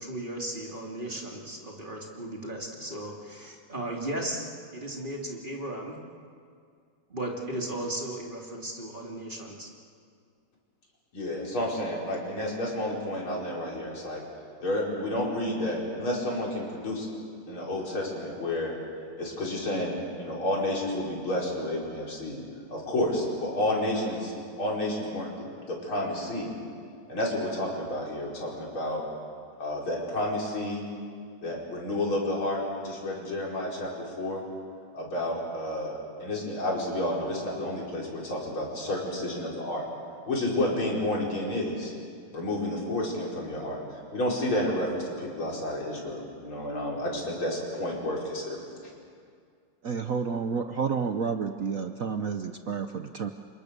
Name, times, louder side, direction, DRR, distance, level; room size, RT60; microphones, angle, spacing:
voice 1, 0.0-4.5 4.7-6.0 7.1-9.7, right 1 dB, 25° right, -1 dB, 3.1 m, -36 dB
voice 2, 11.1-14.2 14.6-17.1 17.5-18.7 19.2-22.4 22.7-26.5 27.1-29.0 29.6-30.8 31.4-34.4 34.9-39.9 40.3-41.9 42.3-43.8 44.1-48.7, left 1 dB, 90° left, -3 dB, 6.1 m, -30 dB
voice 3, 49.8-53.3, right 5 dB, 55° right, 7 dB, 1.0 m, -30 dB
30.0 x 26.5 x 6.8 m, 2.2 s
omnidirectional pair, 2.2 m